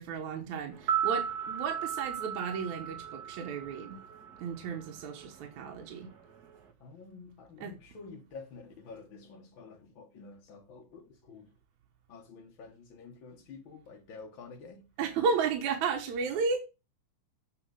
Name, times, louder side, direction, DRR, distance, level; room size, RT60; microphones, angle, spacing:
voice 1, 0.0-4.0 4.4-6.1 7.6-7.7 15.0-16.6, right 5 dB, 75° right, 2.5 m, -33 dB
sound 1, 0.7-4.9 5.2-5.3, right 8 dB, 45° right, 1.3 m, -35 dB
voice 2, 6.8-11.5 12.1-14.9, left 4 dB, 55° left, 1.4 m, -49 dB
7.9 x 5.6 x 6.3 m
omnidirectional pair, 3.5 m